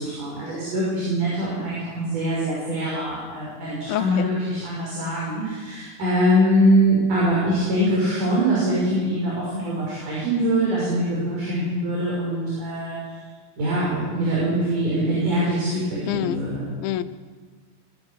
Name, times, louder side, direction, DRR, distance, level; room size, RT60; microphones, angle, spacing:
voice 1, 0.0-13.0 13.6-16.7, right 1 dB, 60° right, -6 dB, 7.5 m, -23 dB
voice 2, 3.9-4.3 16.1-16.4 16.8-17.0, left 12 dB, 85° left, 12 dB, 2.6 m, -26 dB
22.5 x 17.5 x 7.2 m, 1.5 s
omnidirectional pair, 4.1 m